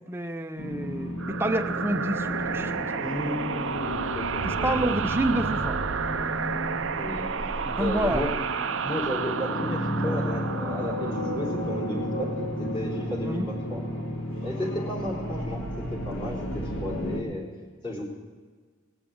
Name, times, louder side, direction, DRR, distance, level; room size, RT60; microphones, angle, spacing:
voice 1, 0.1-2.9 4.4-5.8 7.6-8.2 13.2-13.5, right 1 dB, 10° right, 6 dB, 0.6 m, -28 dB
sound 1, 0.6-17.2, equal, 80° left, 2.3 m, -33 dB
sound 2, 1.2-12.5, right 6 dB, 65° right, 0.5 m, -32 dB
voice 2, 2.9-5.0 7.0-7.3 7.8-12.3 12.6-13.8 14.4-17.5 17.8-18.0, equal, 25° left, -5 dB, 4.0 m, -33 dB
19.5 x 7.5 x 8.5 m, 1.4 s
head